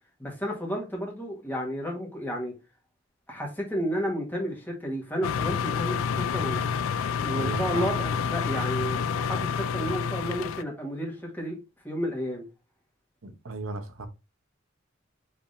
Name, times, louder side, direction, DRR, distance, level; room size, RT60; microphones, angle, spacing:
voice 1, 0.2-2.5 3.3-6.6 7.2-11.6 11.8-12.4, equal, 10° left, 1.4 m, -32 dB
sound 1, 5.2-10.6, left 6 dB, 85° left, 0.3 m, -28 dB
voice 2, 7.3-7.9 13.2-14.1, right 3 dB, 85° right, 0.8 m, -35 dB
4.9 x 3.5 x 2.6 m
head